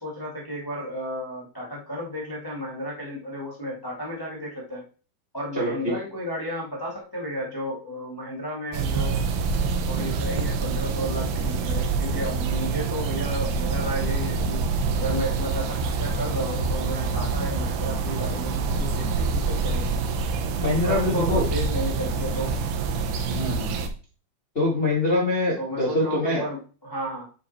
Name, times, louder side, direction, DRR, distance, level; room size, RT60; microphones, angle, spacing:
voice 1, 0.0-4.9 5.3-9.2 9.9-14.6 14.9-20.0 20.7-22.6 25.6-27.3, equal, 10° left, -4 dB, 1.0 m, -33 dB
voice 2, 5.5-6.0 20.6-21.5 23.3-23.8 24.5-26.4, left 2 dB, 55° left, -4 dB, 0.6 m, -24 dB
sound 1, 8.7-23.9, right 4 dB, 85° right, 3.0 m, -26 dB
9.6 x 4.2 x 4.3 m, 0.36 s
omnidirectional pair, 4.5 m